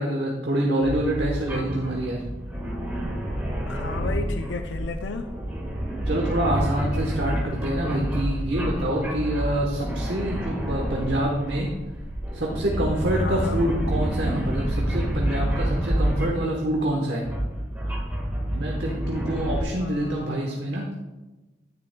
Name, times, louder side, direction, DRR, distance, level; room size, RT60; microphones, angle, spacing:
voice 1, 0.0-2.2 6.1-11.7 12.3-17.2 18.4-20.9, right 1 dB, 65° right, 0 dB, 1.0 m, -26 dB
sound 1, 0.8-16.6 17.2-19.6, right 1 dB, 10° right, 1.5 m, -28 dB
voice 2, 3.7-5.3 13.1-13.6 19.8-20.6, left 4 dB, 75° left, 6 dB, 0.5 m, -34 dB
10.0 x 9.4 x 2.2 m, 1.1 s
head